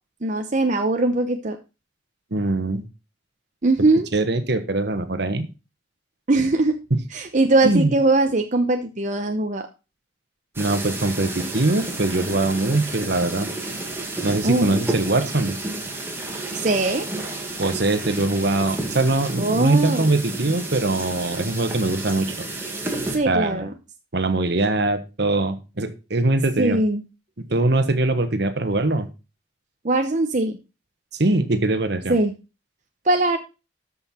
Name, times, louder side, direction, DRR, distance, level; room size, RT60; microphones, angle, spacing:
voice 1, 0.2-1.6 3.6-4.1 6.3-6.8 7.1-9.6 14.4-14.8 16.5-17.1 19.4-20.1 23.1-23.7 26.6-27.0 29.8-30.6 32.1-32.3 33.0-33.4, right 2 dB, 40° right, 4 dB, 0.8 m, -20 dB
voice 2, 2.3-2.8 4.1-5.5 6.9-7.0 7.6-7.9 10.6-13.5 14.2-15.6 17.6-22.3 23.2-23.7 24.1-26.8 27.5-29.1 31.1-32.2, right 2 dB, 60° right, 9 dB, 1.3 m, -22 dB
sound 1, 10.6-23.2, right 2 dB, 15° right, 2.0 m, -31 dB
13.0 x 5.6 x 4.3 m, 0.30 s
head